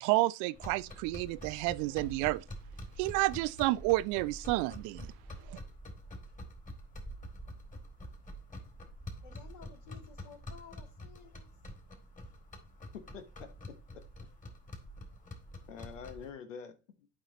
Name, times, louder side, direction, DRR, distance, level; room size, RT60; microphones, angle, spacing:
voice 1, 0.0-2.4 3.0-5.1 5.5-5.6, right 20 dB, 55° right, 0.5 m, -30 dB
sound 1, 0.5-16.3, equal, 20° left, 2.7 m, -47 dB
voice 2, 9.2-11.5, left 7 dB, 50° left, 2.6 m, -54 dB
voice 3, 12.9-14.0 15.7-17.1, left 6 dB, 80° left, 1.1 m, -47 dB
11.5 x 5.5 x 3.0 m
hypercardioid pair, 65°, 37 cm